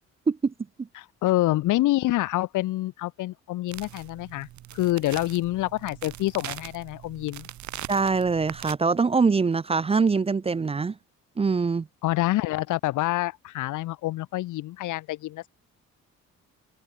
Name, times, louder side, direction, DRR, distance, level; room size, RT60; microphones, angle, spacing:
voice 1, 1.0-4.5 4.7-7.5 12.0-15.5, left 17 dB, 80° left, 0.9 m, -27 dB
sound 1, 3.7-8.8, right 13 dB, 70° right, 1.2 m, -41 dB
voice 2, 7.9-10.9 11.4-11.9, right 4 dB, 20° right, 0.5 m, -23 dB
cardioid pair, 90°, 30 cm